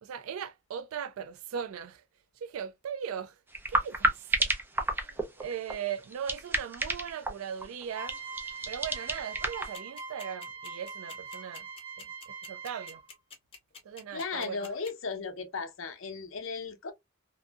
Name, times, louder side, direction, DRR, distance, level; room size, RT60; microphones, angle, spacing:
voice 1, 0.0-2.0 2.4-3.4 3.7-8.2 8.7-11.7 12.0-12.1 12.4-13.0 13.8-14.7, right 8 dB, 85° right, 0.4 m, -39 dB
sound 1, 3.5-9.7, right 1 dB, 10° right, 0.4 m, -31 dB
sound 2, 7.9-13.2, right 5 dB, 45° right, 1.3 m, -42 dB
sound 3, 9.7-14.9, left 4 dB, 25° left, 0.8 m, -47 dB
voice 2, 14.1-16.9, left 4 dB, 70° left, 0.6 m, -36 dB
2.6 x 2.6 x 2.2 m
head